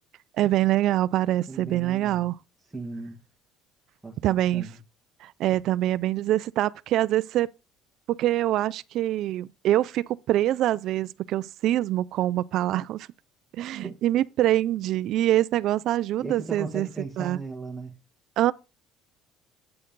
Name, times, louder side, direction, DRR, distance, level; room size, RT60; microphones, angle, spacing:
voice 1, 0.4-2.4 4.2-4.7 5.2-7.5 8.1-13.1 13.6-16.9 17.2-17.4 18.4-18.5, right 14 dB, 60° right, 0.3 m, -24 dB
voice 2, 1.5-2.3 2.7-3.2 4.0-4.8 13.8-14.0 16.2-17.9, right 3 dB, 10° right, 1.4 m, -37 dB
8.6 x 6.6 x 3.9 m
cardioid pair, 120°, 0 cm